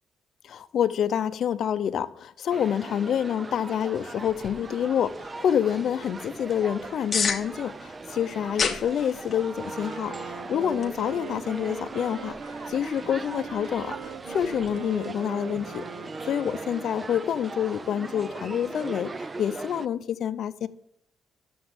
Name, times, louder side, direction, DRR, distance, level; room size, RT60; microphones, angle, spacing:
voice 1, 0.4-15.9 16.2-20.7, left 9 dB, 55° left, 0.6 m, -27 dB
sound 1, 2.5-19.9, right 3 dB, 20° right, 0.4 m, -40 dB
sound 2, 4.2-14.8, left 5 dB, 30° left, 1.1 m, -37 dB
Wind instrument woodwind instrument, 9.5-17.5, right 5 dB, 60° right, 1.0 m, -40 dB
12.0 x 7.0 x 8.0 m
cardioid pair, 170°, 0 cm